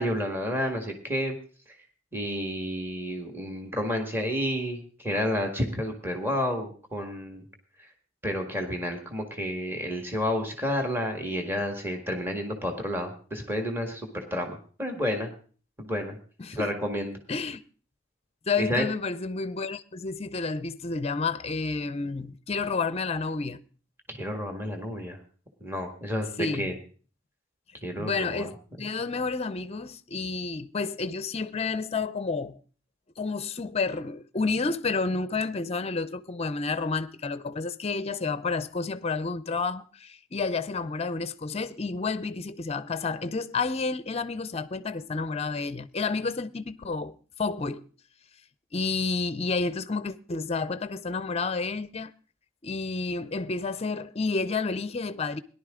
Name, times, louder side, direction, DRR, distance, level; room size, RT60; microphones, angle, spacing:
voice 1, 0.0-1.3 2.1-7.4 8.2-15.3 15.8-16.2 16.5-17.2 18.6-18.8 24.1-25.2 25.6-26.7 27.8-28.5 28.8-28.9, equal, 10° right, 1.7 m, -30 dB
voice 2, 17.3-17.6 18.5-23.6 26.4-26.7 28.0-32.6 33.2-47.8 48.7-52.1 52.6-55.4, left 4 dB, 30° left, 0.6 m, -30 dB
17.5 x 11.0 x 3.7 m
head